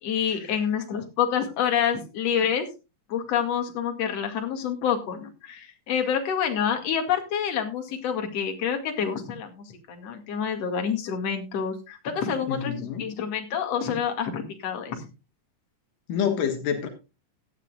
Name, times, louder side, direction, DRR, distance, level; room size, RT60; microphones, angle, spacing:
voice 1, 0.0-2.7 3.1-15.0, left 8 dB, 55° left, 4 dB, 3.1 m, -27 dB
voice 2, 12.5-13.1 16.1-16.9, left 8 dB, 80° left, 6 dB, 3.2 m, -27 dB
16.5 x 11.0 x 2.4 m, 0.29 s
omnidirectional pair, 3.8 m